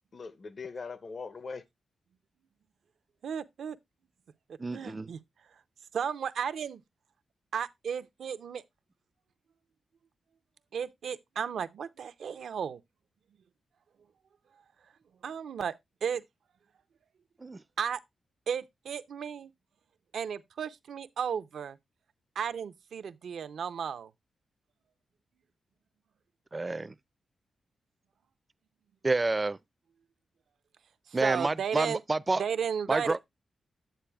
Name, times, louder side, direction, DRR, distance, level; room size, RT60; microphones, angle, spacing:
voice 1, 0.1-1.6, left 4 dB, 50° left, 0.6 m, -41 dB
voice 2, 3.2-3.8 4.7-5.2 5.9-6.8 7.5-8.6 10.7-12.8 15.2-15.7 16.0-16.2 17.8-18.0 18.5-19.5 20.1-21.8 22.4-24.1 31.1-32.0 32.4-33.2, right 7 dB, 80° right, 0.5 m, -34 dB
voice 3, 4.6-5.1 17.4-17.6 26.5-26.9 29.0-29.6 31.1-32.4 32.9-33.2, right 2 dB, 25° right, 0.4 m, -29 dB
10.0 x 7.6 x 2.3 m
cardioid pair, 80°, 0 cm